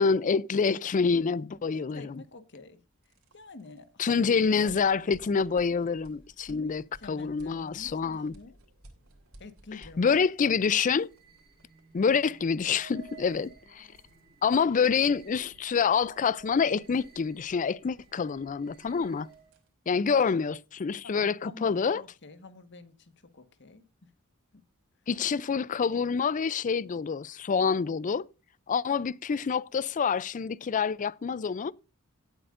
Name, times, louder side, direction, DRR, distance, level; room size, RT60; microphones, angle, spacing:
voice 1, 0.0-2.2 4.0-6.8 7.1-8.3 10.0-11.1 11.9-13.9 14.4-19.3 19.9-22.0 25.1-28.3 28.7-31.7, left 5 dB, 35° left, 0.4 m, -27 dB
voice 2, 1.7-2.8 3.0-4.8 6.5-8.6 9.4-10.5 21.0-24.1 24.5-24.6, left 3 dB, 55° left, 1.4 m, -48 dB
sound 1, 2.9-18.7 19.0-19.7, right 1 dB, 75° right, 2.9 m, -57 dB
sound 2, 9.9-19.6, right 5 dB, 45° right, 2.8 m, -55 dB
17.0 x 7.7 x 2.5 m
head